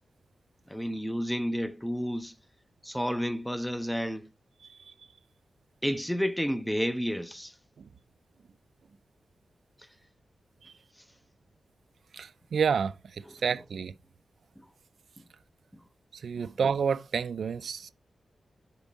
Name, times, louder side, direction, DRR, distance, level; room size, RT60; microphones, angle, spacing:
voice 1, 0.7-2.3 2.8-4.3 5.8-7.5 13.3-13.4 14.6-14.7 16.4-16.5, equal, ahead, 0.4 m, -31 dB
voice 2, 12.1-12.9 13.4-13.9 16.2-17.9, right 6 dB, 70° right, 0.4 m, -29 dB
7.1 x 5.3 x 3.9 m
wide cardioid pair, 170°, 0 cm